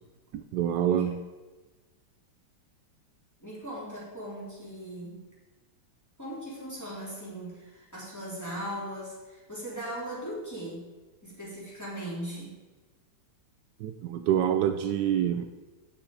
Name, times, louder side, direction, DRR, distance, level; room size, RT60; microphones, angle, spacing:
voice 1, 0.3-1.2 13.8-15.5, right 10 dB, 85° right, 7 dB, 0.9 m, -26 dB
voice 2, 3.4-5.2 6.2-10.9 11.2-12.5, right 1 dB, 5° left, -7 dB, 3.4 m, -39 dB
9.5 x 7.2 x 4.9 m, 1.2 s
omnidirectional pair, 2.4 m